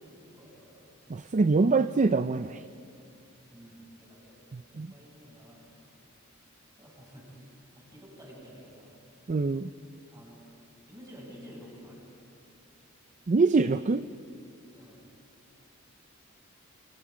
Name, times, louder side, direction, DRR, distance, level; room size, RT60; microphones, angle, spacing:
voice 1, 0.0-1.2 3.5-5.7 6.8-8.9 10.1-10.5 10.9-12.0 14.7-15.0, equal, 20° right, -3 dB, 7.8 m, -51 dB
voice 2, 1.1-2.6 4.5-4.9 9.3-9.7 13.3-14.0, right 3 dB, 35° right, 11 dB, 0.5 m, -24 dB
29.5 x 26.5 x 5.1 m, 2.7 s
head